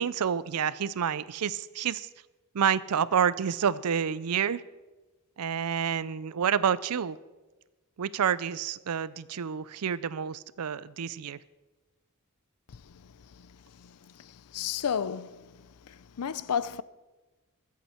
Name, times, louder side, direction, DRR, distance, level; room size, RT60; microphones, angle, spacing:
voice 1, 0.0-2.1 2.5-4.6 5.4-7.2 8.0-11.4, right 7 dB, 85° right, 0.5 m, -28 dB
voice 2, 14.5-15.3 16.2-16.8, left 7 dB, 90° left, 0.5 m, -30 dB
22.5 x 8.4 x 4.4 m
head